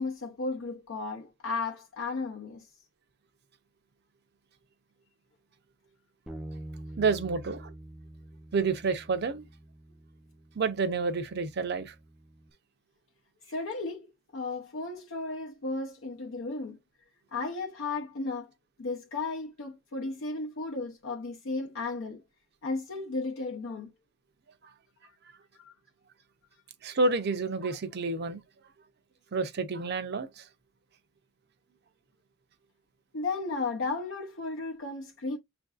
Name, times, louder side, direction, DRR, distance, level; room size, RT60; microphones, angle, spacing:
voice 1, 0.0-2.7 13.5-16.8 17.3-18.5 18.8-22.2 22.6-23.9 25.6-25.7 33.1-35.4, left 3 dB, 75° left, 0.6 m, -34 dB
Bass guitar, 6.3-12.5, right 1 dB, 5° right, 0.4 m, -46 dB
voice 2, 7.0-7.7 8.5-9.4 10.6-11.9 26.8-28.4 29.3-30.4, right 4 dB, 55° right, 0.5 m, -29 dB
6.1 x 2.6 x 2.3 m
head